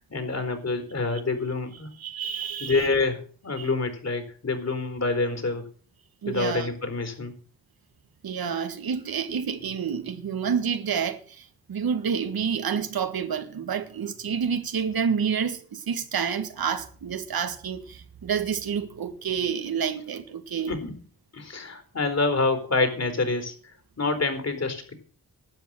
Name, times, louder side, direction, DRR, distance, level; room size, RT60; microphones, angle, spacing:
voice 1, 0.0-1.9 2.6-5.7 6.3-7.3 20.7-21.0 21.3-23.5 24.0-24.9, left 3 dB, 45° left, 4.4 m, -27 dB
voice 2, 2.0-2.9 3.6-3.7 6.2-6.7 8.2-20.8, right 7 dB, 85° right, 1.8 m, -29 dB
12.0 x 8.7 x 7.7 m
cardioid pair, 65°, 35 cm